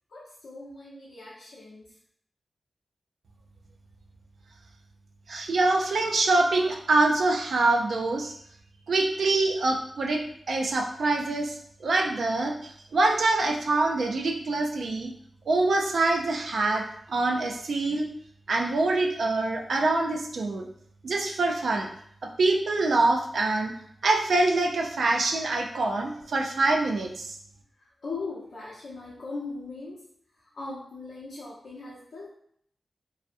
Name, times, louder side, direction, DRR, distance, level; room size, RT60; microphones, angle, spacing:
voice 1, 0.1-1.9 27.8-30.1 30.4-32.3, left 3 dB, 80° left, -7 dB, 0.6 m, -39 dB
voice 2, 5.3-8.3 8.9-15.1 15.5-18.1 18.5-20.7 21.0-21.9 22.2-23.7 24.0-27.4, right 2 dB, 70° right, 1 dB, 0.4 m, -25 dB
2.5 x 2.0 x 2.5 m, 0.65 s
wide cardioid pair, 135°, 0 cm